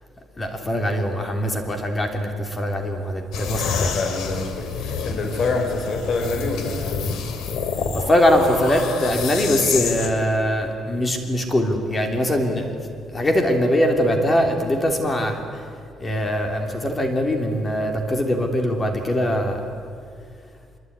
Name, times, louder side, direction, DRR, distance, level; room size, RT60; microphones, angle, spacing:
voice 1, 0.4-3.9 7.9-12.7 13.1-15.6 16.0-19.6, equal, 20° left, 4 dB, 3.1 m, -22 dB
sound 1, 3.3-10.1, left 5 dB, 85° left, 3.0 m, -28 dB
voice 2, 3.8-7.0, left 3 dB, 45° left, 3 dB, 5.0 m, -26 dB
25.0 x 23.0 x 9.6 m, 2.2 s
cardioid pair, 140°, 0 cm